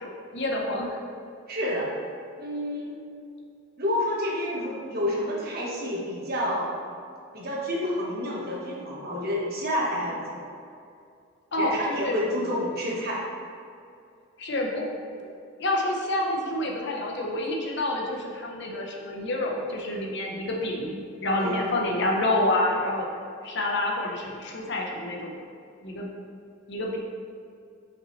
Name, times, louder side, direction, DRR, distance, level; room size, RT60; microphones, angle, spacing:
voice 1, 0.0-1.0 11.5-12.2 14.4-14.9 15.2-15.3 15.6-25.4 25.8-26.1 26.7-27.0, left 1 dB, 60° left, -1 dB, 0.9 m, -28 dB
voice 2, 1.5-1.9 2.4-2.9 3.8-6.8 7.3-10.4 11.6-13.2 21.4-21.6, left 1 dB, 50° right, -4 dB, 1.3 m, -29 dB
5.9 x 5.2 x 3.2 m, 2.5 s
head